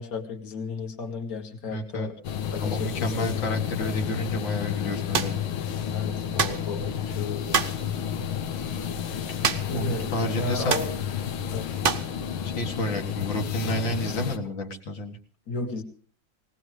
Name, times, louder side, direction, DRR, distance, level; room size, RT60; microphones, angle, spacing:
voice 1, 0.0-2.2 2.5-3.3 5.9-7.6 9.7-10.9 11.5-11.7 15.5-15.8, left 4 dB, 45° left, 3 dB, 2.2 m, -34 dB
voice 2, 1.7-2.1 2.5-5.4 8.8-9.0 9.7-10.8 12.6-15.2, equal, 70° left, 2 dB, 2.5 m, -30 dB
sound 1, 2.2-14.4, left 9 dB, 85° left, 1.8 m, -31 dB
sound 2, 5.1-5.4 6.4-6.7 7.5-7.8 9.4-9.8 10.1-10.2 10.7-10.9 11.8-12.1, right 6 dB, 75° right, 0.5 m, -26 dB
19.0 x 18.5 x 3.3 m, 0.40 s
omnidirectional pair, 2.2 m